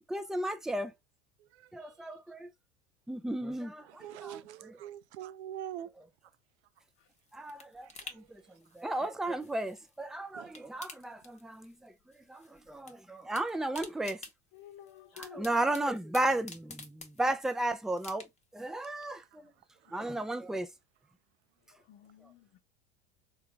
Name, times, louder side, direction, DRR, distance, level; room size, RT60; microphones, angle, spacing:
voice 1, 0.1-0.9 1.7-2.5 3.1-4.8 7.3-8.4 8.7-11.9 12.3-14.2 15.1-18.3 18.5-19.5 19.9-20.7, right 1 dB, ahead, 0.3 m, -34 dB
voice 2, 3.9-5.9 7.9-8.1 10.3-10.5 19.9-20.0, right 11 dB, 85° right, 0.5 m, -44 dB
sound 1, 6.8-10.1 10.4-11.9 12.1-12.9 13.2-17.5 18.0-18.6 19.0-19.1, left 3 dB, 20° left, 0.8 m, -50 dB
voice 3, 14.5-15.5 21.7-22.6, left 11 dB, 55° left, 0.8 m, -52 dB
3.7 x 2.3 x 3.1 m
hypercardioid pair, 85°, 33 cm